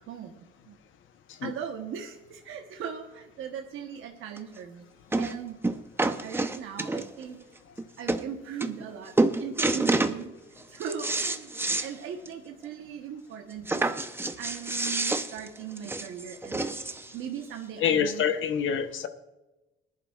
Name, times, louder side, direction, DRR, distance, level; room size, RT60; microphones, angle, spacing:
voice 1, 0.1-0.8 1.4-4.9 5.2-5.6 6.2-7.4 8.0-10.3 10.7-11.5 11.8-13.9 14.4-16.7 17.1-18.3, right 8 dB, 85° right, 3 dB, 1.1 m, -39 dB
sound 1, 4.4-4.5 5.1-5.4 5.6-7.2 7.8-7.9 8.1-8.2 8.6-8.9 9.2-10.2 10.6-11.9 12.3-12.4 12.7-12.8 13.7-17.1 17.9-18.0, right 2 dB, 10° right, 0.7 m, -28 dB
voice 2, 17.8-19.1, left 8 dB, 75° left, 9 dB, 0.9 m, -26 dB
20.0 x 11.0 x 2.4 m, 1.0 s
cardioid pair, 90°, 20 cm